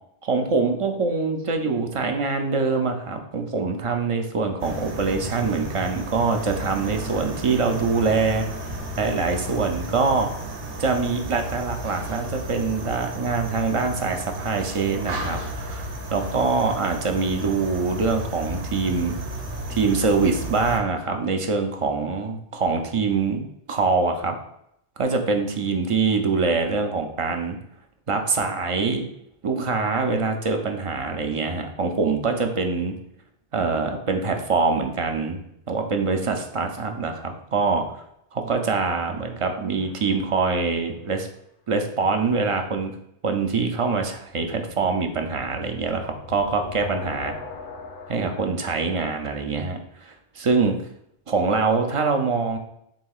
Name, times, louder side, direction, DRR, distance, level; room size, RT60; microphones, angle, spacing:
voice 1, 0.2-8.5 9.0-10.3 10.8-19.2 19.7-24.4 25.0-27.6 28.1-29.0 29.4-32.9 33.5-35.4 35.7-38.0 38.3-41.3 41.7-42.9 43.2-47.3 48.1-50.8 51.3-52.6, right 4 dB, 45° right, 4 dB, 0.4 m, -24 dB
sound 1, 4.6-20.8, right 1 dB, 65° right, 0.9 m, -33 dB
sound 2, 39.8-40.7 44.2-48.5, left 3 dB, 60° left, 0.7 m, -40 dB
7.0 x 2.7 x 2.4 m, 0.76 s
omnidirectional pair, 1.1 m